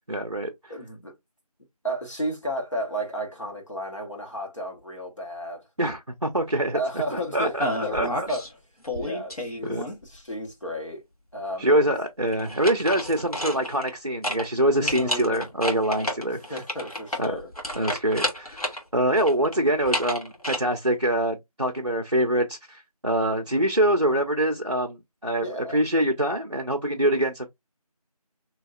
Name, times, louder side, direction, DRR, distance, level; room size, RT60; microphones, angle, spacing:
voice 1, 0.1-0.7 5.8-6.8 7.1-7.7 7.9-8.3 9.0-9.2 9.6-9.8 11.6-16.4 17.2-17.4 17.8-18.6 18.9-27.5, right 1 dB, 50° right, 0.5 m, -25 dB
voice 2, 0.7-1.1 1.8-5.6 6.7-8.0 8.3-8.4 8.9-9.7 10.0-11.0 11.3-11.8 14.7-15.4 16.3-17.5 25.4-25.8, equal, 50° left, 1.5 m, -33 dB
sound 1, 7.6-8.5 8.8-10.2 12.3-14.0 14.2-14.5 14.8-18.8 19.2-20.6, left 1 dB, 70° left, 1.4 m, -30 dB
3.8 x 2.8 x 2.4 m
figure-of-eight pair, 175°, 20 cm